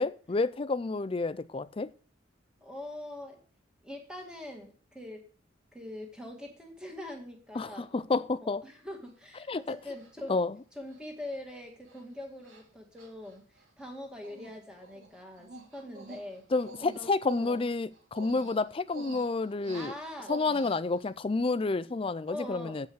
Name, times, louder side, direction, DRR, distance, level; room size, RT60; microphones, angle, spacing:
voice 1, 0.0-1.9 7.5-8.6 9.5-9.8 10.3-10.6 16.5-19.9 20.3-22.9, left 3 dB, 25° left, 0.4 m, -30 dB
voice 2, 2.6-3.4 3.8-5.3 5.7-7.9 8.4-10.4 10.8-16.5 16.8-17.6 19.7-20.3 22.3-22.8, left 1 dB, 5° right, 1.8 m, -43 dB
Human voice, 9.1-9.2 9.9-10.3 10.9-11.0 11.3-11.6 11.8-12.0 12.4-12.6 13.0-13.9 14.2-14.6 14.8-21.1, right 3 dB, 75° right, 2.3 m, -48 dB
8.2 x 5.5 x 7.7 m
head